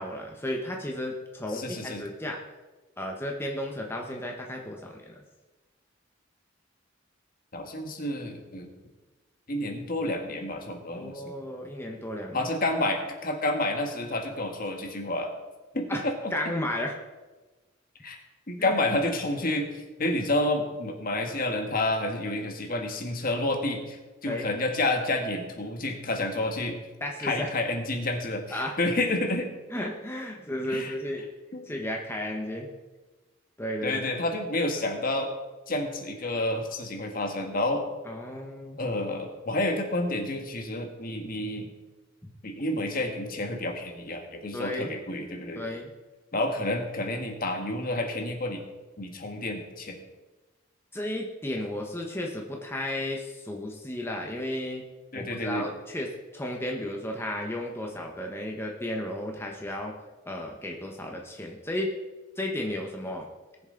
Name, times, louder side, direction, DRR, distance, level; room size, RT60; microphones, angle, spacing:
voice 1, 0.0-2.4 3.0-5.2 10.9-12.4 15.9-16.0 16.3-17.0 18.6-18.8 24.3-24.5 27.0-27.5 28.5-28.7 29.7-31.2 31.7-32.7 33.6-34.0 38.0-38.8 44.5-44.9 45.5-45.9 50.9-54.8 55.1-59.9 60.3-61.9 62.4-63.3, left 1 dB, 10° left, 0 dB, 1.1 m, -33 dB
voice 2, 1.5-2.0 7.5-8.7 9.5-11.3 12.3-15.3 15.7-16.3 18.0-18.2 18.5-26.8 27.2-29.5 30.7-30.9 31.5-31.7 33.8-35.3 35.7-37.9 38.8-41.7 42.4-45.6 46.3-48.6 49.0-50.0 55.1-55.7, left 1 dB, 45° left, 4 dB, 1.6 m, -29 dB
20.0 x 7.1 x 3.9 m, 1.2 s
head